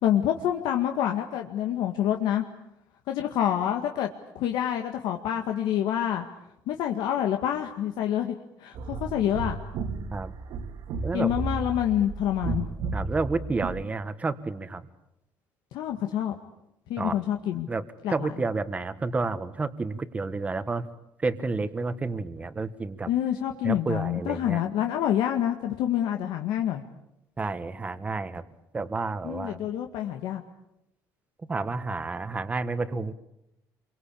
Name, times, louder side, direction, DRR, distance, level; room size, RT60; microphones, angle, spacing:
voice 1, 0.0-2.4 3.1-4.1 4.4-6.3 6.7-8.3 8.6-9.6 11.1-12.7 15.7-16.4 16.9-17.7 18.0-18.3 23.1-26.8 29.2-30.4, left 10 dB, 75° left, 4 dB, 1.9 m, -27 dB
sound 1, 8.7-13.8, right 4 dB, 65° right, 2.3 m, -33 dB
voice 2, 12.9-14.8 17.0-17.2 17.7-17.8 18.1-20.9 21.2-23.1 23.6-24.6 27.4-28.4 28.7-29.6 31.5-33.1, right 3 dB, 20° right, 12 dB, 1.4 m, -30 dB
28.5 x 24.0 x 8.6 m, 0.85 s
cardioid pair, 150°, 8 cm